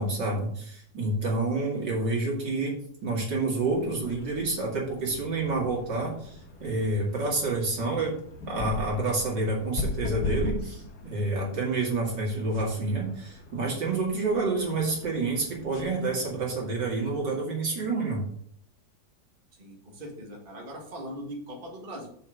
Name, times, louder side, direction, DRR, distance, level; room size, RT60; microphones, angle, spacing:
voice 1, 0.0-2.7 3.0-8.2 8.5-18.2, right 3 dB, 70° right, -3 dB, 3.1 m, -28 dB
sound 1, 3.6-17.2, left 3 dB, 60° left, 2.4 m, -40 dB
voice 2, 19.6-22.1, equal, 30° right, -1 dB, 2.0 m, -40 dB
6.9 x 5.5 x 6.5 m, 0.63 s
omnidirectional pair, 2.0 m